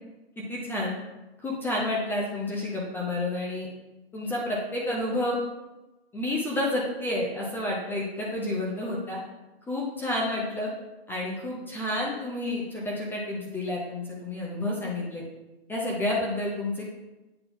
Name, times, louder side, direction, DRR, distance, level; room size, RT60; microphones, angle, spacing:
voice 1, 0.4-0.9 1.4-3.7 4.1-5.4 6.1-9.2 9.7-10.7 11.1-15.2 15.7-16.9, left 1 dB, 5° left, -4 dB, 0.6 m, -30 dB
8.6 x 4.1 x 3.9 m, 1.1 s
hypercardioid pair, 140°, 31 cm